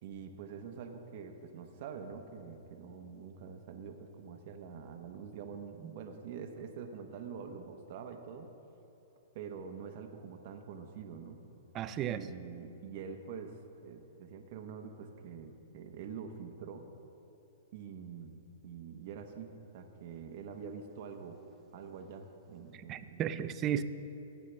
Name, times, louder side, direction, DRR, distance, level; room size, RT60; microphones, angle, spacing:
voice 1, 0.0-8.5 9.3-11.4 12.1-13.5 13.8-16.9 17.7-21.4 21.7-23.6, right 6 dB, 55° right, 4 dB, 1.0 m, -45 dB
voice 2, 11.7-12.2 22.9-23.8, right 10 dB, 30° right, 12 dB, 0.5 m, -33 dB
17.0 x 8.3 x 3.3 m, 3.0 s
hypercardioid pair, 140°, 0 cm